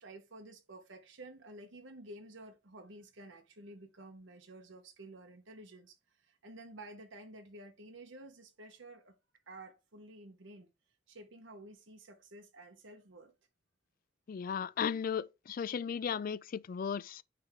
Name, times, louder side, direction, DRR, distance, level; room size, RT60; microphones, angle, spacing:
voice 1, 0.0-9.2 9.5-10.7 11.1-13.3, right 1 dB, 80° right, 1.1 m, -52 dB
voice 2, 14.3-17.2, left 7 dB, 45° left, 0.3 m, -35 dB
9.6 x 3.4 x 3.5 m
head